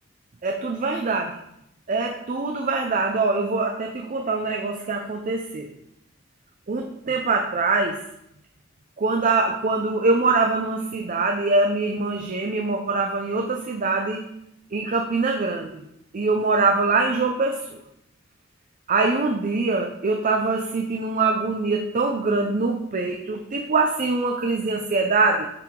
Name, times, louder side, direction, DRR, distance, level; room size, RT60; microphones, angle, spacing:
voice 1, 0.4-1.3 1.9-5.7 6.7-8.0 9.0-14.2 14.7-15.8 16.1-17.8 18.9-25.5, right 3 dB, 40° right, 3 dB, 0.5 m, -23 dB
7.6 x 4.6 x 3.7 m, 0.80 s
head